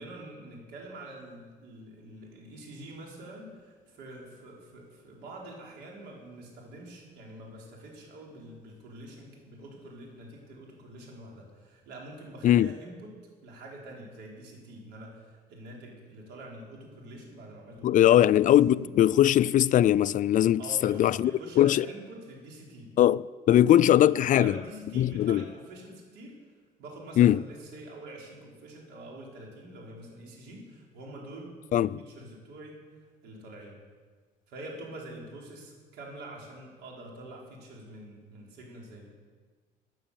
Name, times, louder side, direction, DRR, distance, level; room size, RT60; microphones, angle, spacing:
voice 1, 0.0-18.3 18.8-18.9 20.6-22.9 23.6-26.4 26.8-32.8 33.2-33.7 34.5-39.1, right 1 dB, 85° right, 4.6 m, -45 dB
voice 2, 17.8-21.9 23.0-24.5 25.0-25.4 27.2-27.4 31.7-32.0, left 12 dB, 50° left, 0.4 m, -21 dB
16.0 x 9.8 x 7.1 m
cardioid pair, 110°, 17 cm